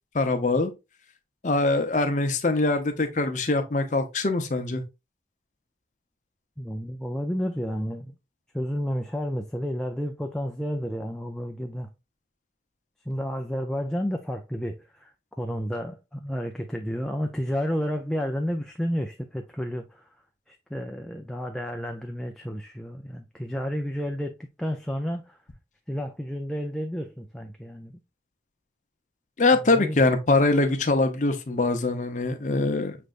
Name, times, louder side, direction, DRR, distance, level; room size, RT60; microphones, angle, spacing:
voice 1, 0.1-0.7 1.4-4.8 29.4-33.0, left 2 dB, 45° left, 0.7 m, -23 dB
voice 2, 6.6-8.1 8.5-11.9 13.1-15.1 15.4-20.0 20.5-25.4 25.9-27.9 29.6-30.0, equal, 5° left, 0.3 m, -31 dB
6.3 x 3.3 x 2.4 m
head